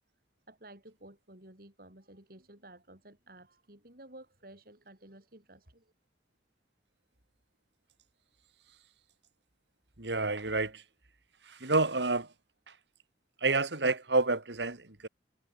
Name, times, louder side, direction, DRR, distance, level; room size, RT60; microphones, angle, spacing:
voice 1, 0.5-5.9, right 1 dB, 55° right, 4.9 m, -53 dB
voice 2, 10.0-10.8 11.5-12.3 13.4-15.1, right 3 dB, 85° right, 2.5 m, -29 dB
head